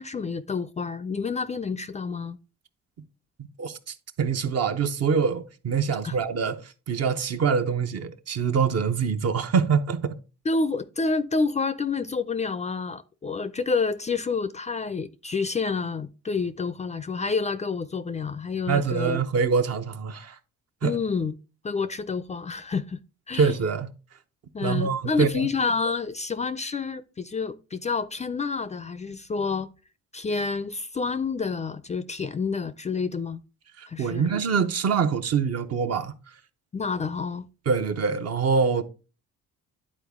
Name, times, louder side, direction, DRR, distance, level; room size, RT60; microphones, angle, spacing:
voice 1, 0.0-2.4 6.0-6.2 10.5-19.2 20.8-21.3 21.6-23.0 23.3-23.5 24.5-29.7 30.1-33.4 33.9-34.3 36.7-37.5, left 4 dB, 25° left, 0.4 m, -28 dB
voice 2, 3.6-6.6 6.9-10.1 18.7-20.3 20.8-21.0 23.3-23.9 24.6-25.5 33.8-36.1 37.7-38.8, right 6 dB, 55° right, 0.8 m, -25 dB
10.0 x 4.1 x 3.5 m
cardioid pair, 90°, 30 cm